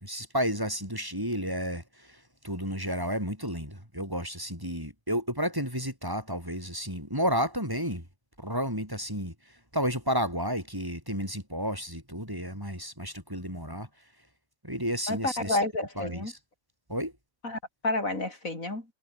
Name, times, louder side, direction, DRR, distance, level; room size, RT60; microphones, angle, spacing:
voice 1, 0.0-8.1 8.4-13.9 14.6-15.6 16.0-16.4 16.9-17.1, equal, 15° right, 7.4 m, -32 dB
voice 2, 15.1-16.3 17.4-18.8, left 2 dB, 70° left, 5.8 m, -30 dB
omnidirectional pair, 1.5 m